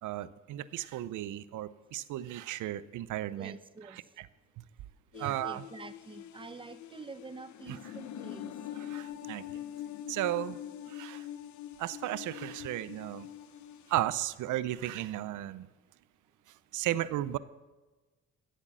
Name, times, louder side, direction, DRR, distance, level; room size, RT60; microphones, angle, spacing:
voice 1, 0.0-3.6 4.2-4.3 4.6-4.7 5.2-5.6 7.7-7.8 8.8-9.6 10.1-10.6 10.9-11.3 11.8-13.3 13.9-15.7 16.7-17.4, right 13 dB, 80° right, 17 dB, 0.6 m, -34 dB
voice 2, 3.3-4.0 5.1-8.5, right 4 dB, 15° right, 13 dB, 0.7 m, -47 dB
sound 1, 5.1-13.9, left 11 dB, 70° left, 0.8 m, -44 dB
14.5 x 8.3 x 6.2 m, 1.2 s
cardioid pair, 90°, 30 cm